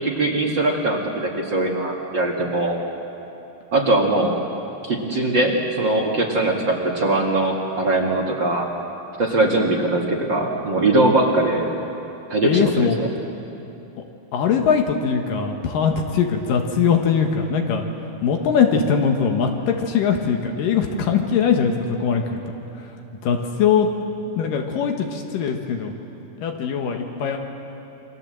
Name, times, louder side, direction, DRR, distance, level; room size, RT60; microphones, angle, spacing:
voice 1, 0.0-2.8 3.7-4.4 4.8-8.7 9.2-11.7 12.3-12.9, right 2 dB, 40° right, 0 dB, 2.3 m, -21 dB
voice 2, 12.4-13.0 14.3-17.9 18.2-22.4 22.8-22.9 23.2-23.9 24.4-25.9 26.4-27.4, left 6 dB, 80° left, 3 dB, 3.1 m, -21 dB
28.0 x 24.0 x 7.7 m, 2.9 s
omnidirectional pair, 3.8 m